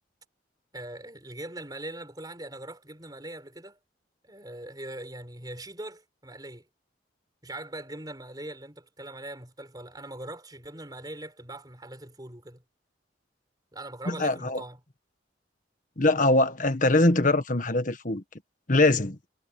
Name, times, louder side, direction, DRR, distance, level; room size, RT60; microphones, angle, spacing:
voice 1, 0.7-3.8 4.2-6.7 7.4-12.6 13.7-14.8, right 1 dB, 20° right, 4.8 m, -41 dB
voice 2, 14.1-14.6 16.0-18.2 18.7-19.2, left 2 dB, 45° left, 1.6 m, -22 dB
head